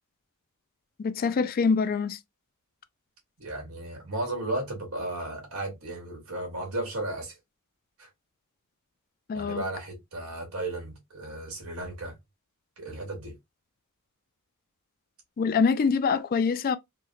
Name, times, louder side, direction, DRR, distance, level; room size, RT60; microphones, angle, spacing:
voice 1, 1.0-2.2 9.3-9.6 15.4-16.8, left 5 dB, 45° left, 0.3 m, -25 dB
voice 2, 3.4-7.4 8.0-8.1 9.3-12.1 12.8-13.4, right 2 dB, 85° right, 1.8 m, -34 dB
3.8 x 2.2 x 2.5 m
head